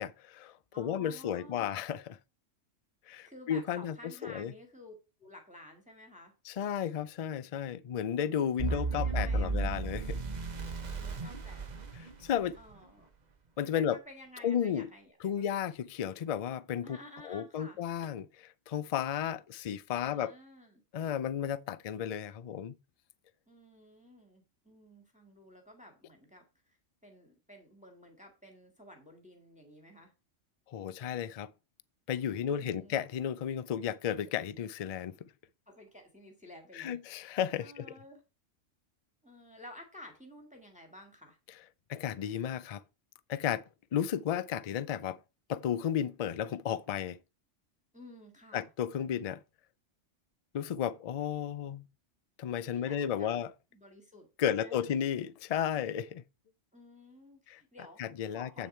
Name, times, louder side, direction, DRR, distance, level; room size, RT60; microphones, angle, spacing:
voice 1, 0.0-2.2 3.1-4.0 4.2-4.5 6.5-10.2 12.2-12.6 13.6-14.0 14.4-14.9 15.2-17.0 17.2-20.3 20.9-22.8 30.7-31.5 32.1-35.3 36.7-37.9 41.9-42.8 43.3-43.6 43.9-45.2 45.5-47.2 48.5-49.4 50.5-51.8 52.4-53.5 54.4-56.2 57.5-57.6 58.0-58.7, left 9 dB, 60° left, 0.4 m, -33 dB
voice 2, 0.7-1.8 3.2-4.9 5.2-6.3 8.7-9.9 10.9-11.7 12.6-13.1 13.7-15.4 16.8-17.8 20.0-20.8 23.5-30.1 32.4-33.0 35.7-37.0 37.6-38.2 39.2-41.4 47.9-48.7 52.6-53.5 53.7-55.0 56.7-58.0 58.3-58.7, left 1 dB, 5° right, 1.8 m, -53 dB
sound 1, 8.6-12.7, right 3 dB, 40° right, 1.0 m, -34 dB
8.5 x 6.8 x 4.4 m
omnidirectional pair, 1.3 m